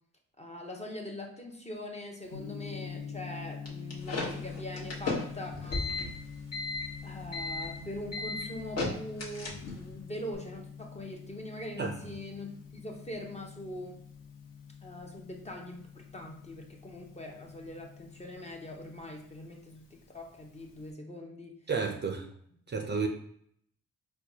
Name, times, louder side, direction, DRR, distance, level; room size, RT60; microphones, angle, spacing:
voice 1, 0.4-5.9 7.0-14.0 14.8-21.6, left 1 dB, 20° left, 1 dB, 0.7 m, -42 dB
Gong, 2.3-20.9, left 6 dB, 85° left, 0.6 m, -46 dB
sound 1, 3.7-9.9, left 3 dB, 50° left, 1.1 m, -35 dB
voice 2, 21.7-22.3 22.7-23.1, right 5 dB, 35° right, 3 dB, 0.5 m, -31 dB
4.4 x 2.2 x 2.7 m, 0.66 s
cardioid pair, 80°, 33 cm